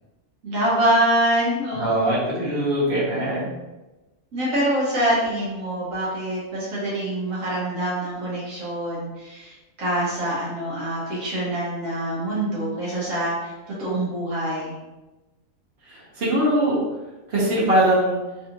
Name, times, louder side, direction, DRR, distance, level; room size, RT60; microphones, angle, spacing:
voice 1, 0.4-2.1 4.3-13.5 13.8-14.7, right 1 dB, 75° right, -7 dB, 1.4 m, -25 dB
voice 2, 1.7-3.5 15.9-16.8 17.3-18.2, right 1 dB, 55° right, -7 dB, 1.3 m, -22 dB
3.4 x 2.5 x 2.8 m, 1.1 s
omnidirectional pair, 1.4 m